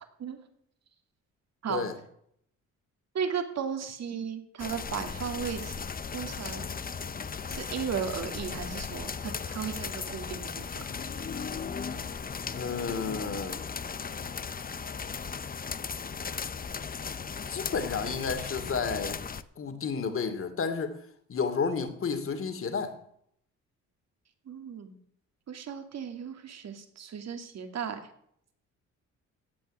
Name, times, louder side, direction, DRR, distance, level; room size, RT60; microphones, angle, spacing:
voice 1, 3.1-5.8 6.1-6.7 7.5-10.8 24.5-25.0 25.5-28.0, right 7 dB, 60° right, 6 dB, 2.6 m, -35 dB
sound 1, 4.6-19.4, left 6 dB, 30° left, 0.8 m, -37 dB
voice 2, 12.5-13.7 17.5-19.2 19.6-21.0 21.3-22.9, left 5 dB, 45° left, 8 dB, 2.6 m, -31 dB
16.5 x 5.7 x 10.0 m, 0.69 s
cardioid pair, 90°, 30 cm